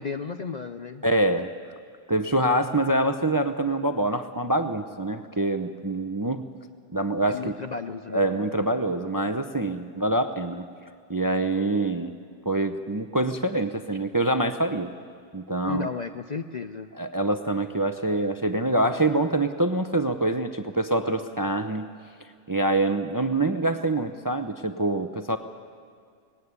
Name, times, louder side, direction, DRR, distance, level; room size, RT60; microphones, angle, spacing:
voice 1, 0.0-1.0 7.3-8.3 15.7-16.9, left 5 dB, 45° left, 8 dB, 0.6 m, -33 dB
voice 2, 1.0-1.5 2.1-6.4 6.9-7.5 8.1-10.6 11.1-12.1 12.5-14.9 15.3-15.9 17.0-21.9 22.5-25.4, right 2 dB, 20° right, 9 dB, 0.6 m, -25 dB
19.5 x 16.5 x 9.6 m, 2.3 s
omnidirectional pair, 1.3 m